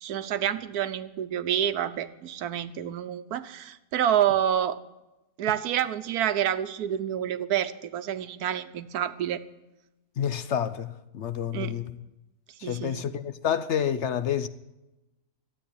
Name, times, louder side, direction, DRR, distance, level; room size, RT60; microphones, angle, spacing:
voice 1, 0.0-4.8 5.4-9.4 11.5-11.8 12.6-13.1, right 10 dB, 90° right, 1.3 m, -28 dB
voice 2, 10.2-12.0 12.6-14.5, left 9 dB, 60° left, 0.9 m, -29 dB
13.0 x 8.8 x 10.0 m
omnidirectional pair, 1.6 m